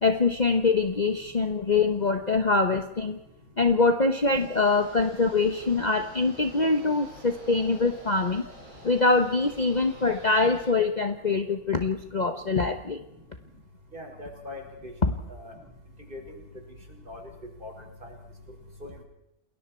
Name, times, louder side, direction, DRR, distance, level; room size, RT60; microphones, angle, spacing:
voice 1, 0.0-3.2 3.6-8.4 8.8-13.0, left 3 dB, 30° left, 6 dB, 1.1 m, -24 dB
sound 1, 4.2-10.7, right 1 dB, 55° right, 5.4 m, -48 dB
voice 2, 13.9-14.9 15.3-15.6 16.1-16.4 17.1-17.2 17.6-17.7 18.0-18.1 18.8-19.0, left 2 dB, 35° right, 1 dB, 5.5 m, -41 dB
29.0 x 20.5 x 4.5 m, 0.84 s
omnidirectional pair, 1.6 m